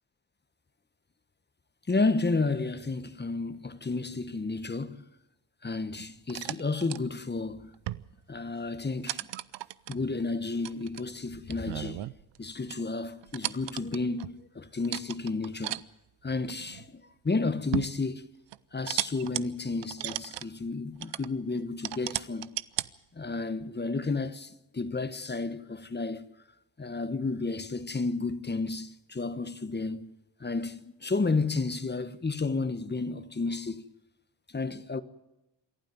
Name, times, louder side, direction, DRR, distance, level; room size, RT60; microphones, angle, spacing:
voice 1, 1.9-5.0 5.6-7.7 8.3-9.2 9.9-12.1 12.4-15.8 16.2-18.2 18.7-22.5 23.1-26.3 26.8-30.1 30.4-33.8 34.5-35.0, left 3 dB, 25° left, 1.3 m, -31 dB
sound 1, 6.0-7.0 7.7-8.2 8.5-8.7 9.1-10.0 10.6-12.4 12.7-12.8 13.2-14.4 14.8-15.8 16.4-16.9 17.4-18.0 18.5-19.4 19.8-20.5 21.0-21.3 21.8-22.9, right 15 dB, 85° right, 0.7 m, -35 dB
27.0 x 12.0 x 9.3 m
cardioid pair, 75°, 41 cm